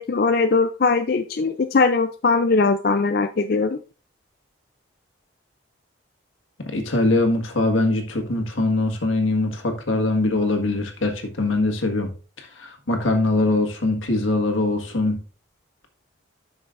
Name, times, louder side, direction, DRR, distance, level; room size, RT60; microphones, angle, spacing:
voice 1, 0.0-3.8, left 4 dB, 50° left, 8 dB, 0.4 m, -20 dB
voice 2, 6.7-12.1 12.4-15.2, left 2 dB, 85° left, 4 dB, 1.7 m, -22 dB
11.0 x 6.2 x 2.5 m, 0.35 s
head